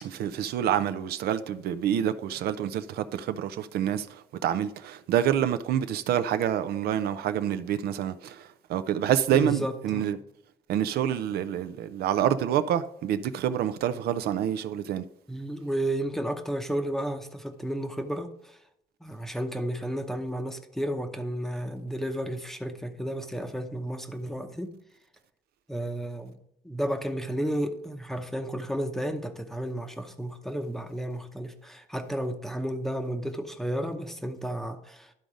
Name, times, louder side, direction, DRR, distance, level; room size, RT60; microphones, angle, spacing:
voice 1, 0.0-10.2 10.7-15.0, right 10 dB, 65° right, 0.5 m, -27 dB
voice 2, 9.3-10.1 15.3-18.6 19.0-24.8 25.7-26.4 26.6-35.1, right 1 dB, ahead, 0.8 m, -32 dB
11.5 x 3.9 x 5.0 m
cardioid pair, 110°, 17 cm